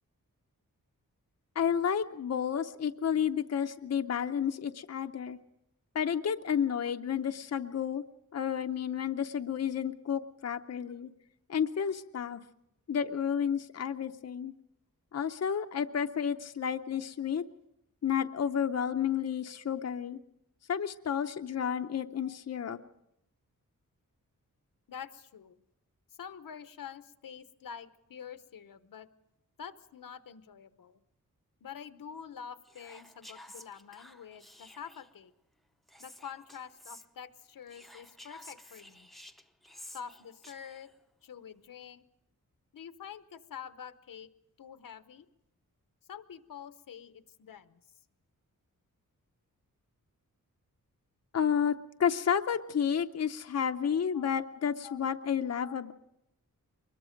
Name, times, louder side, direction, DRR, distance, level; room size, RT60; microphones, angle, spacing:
voice 1, 1.6-5.4 5.9-8.0 8.3-11.1 11.5-12.4 12.9-14.5 15.1-17.4 18.0-20.2 20.7-22.8 51.3-51.7 52.0-55.9, left 8 dB, 50° left, 7 dB, 0.7 m, -31 dB
voice 2, 24.9-25.6 26.2-29.1 29.6-31.0 31.6-35.3 36.0-39.1 39.8-40.9 41.2-42.0 42.7-44.3 44.6-45.3 46.1-47.8 54.1-54.3 54.8-55.0 55.6-55.7, left 7 dB, 85° left, 12 dB, 0.9 m, -47 dB
Whispering, 32.6-35.2 35.9-37.1 37.7-41.0, left 1 dB, ahead, 0.8 m, -52 dB
23.5 x 21.0 x 5.1 m, 0.82 s
wide cardioid pair, 150°, 33 cm